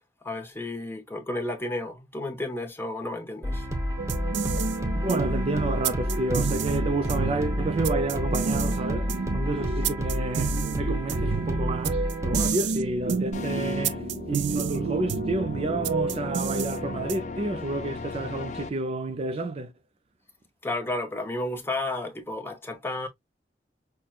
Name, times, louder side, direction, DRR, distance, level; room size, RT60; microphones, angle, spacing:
voice 1, 0.2-3.6 20.6-23.1, left 2 dB, 15° left, 0.7 m, -32 dB
sound 1, 3.4-12.5, equal, 20° right, 0.9 m, -30 dB
sound 2, 4.0-17.4, right 5 dB, 90° right, 0.4 m, -30 dB
voice 2, 4.9-19.7, right 2 dB, 35° right, 0.4 m, -30 dB
sound 3, 13.3-18.7, left 4 dB, 45° left, 0.4 m, -37 dB
5.9 x 2.1 x 2.3 m
head